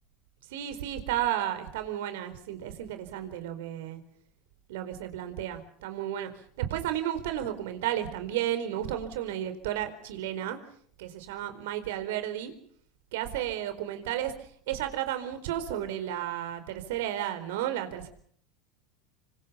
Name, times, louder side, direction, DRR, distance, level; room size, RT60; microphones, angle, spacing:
voice 1, 0.5-4.0 4.7-6.3 6.6-10.6 11.0-12.5 13.1-18.1, right 11 dB, 70° right, 9 dB, 4.2 m, -33 dB
26.5 x 25.0 x 5.7 m, 0.62 s
hypercardioid pair, 95°, 0 cm